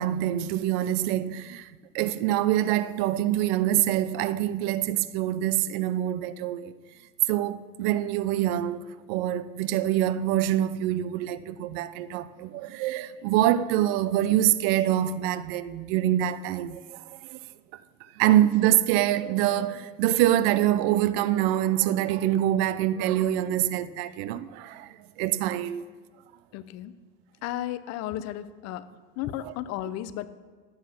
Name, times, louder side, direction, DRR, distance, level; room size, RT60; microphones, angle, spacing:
voice 1, 0.0-6.8 7.3-17.4 17.7-17.8 18.2-25.8 29.4-29.5, right 12 dB, 80° right, 0.6 m, -25 dB
voice 2, 26.5-26.9 27.4-28.9 29.2-30.3, left 13 dB, 60° left, 0.7 m, -34 dB
12.0 x 8.0 x 5.8 m
cardioid pair, 125°, 30 cm